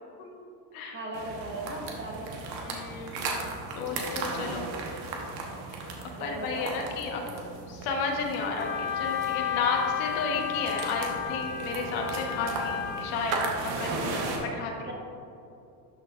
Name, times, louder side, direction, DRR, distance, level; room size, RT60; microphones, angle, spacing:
voice 1, 0.9-2.3 6.2-6.7 14.9-15.0, right 2 dB, 20° right, -1 dB, 1.3 m, -37 dB
sound 1, 1.1-14.4, right 3 dB, 85° right, 1.2 m, -36 dB
voice 2, 2.6-3.3 3.7-4.7 5.8-7.2 7.7-13.4 13.8-14.9, left 4 dB, 70° left, 1 dB, 1.3 m, -32 dB
Wind instrument woodwind instrument, 8.6-13.2, left 9 dB, 25° left, 0.4 m, -32 dB
12.5 x 4.1 x 2.4 m, 2.8 s
supercardioid pair, 100°, 50 cm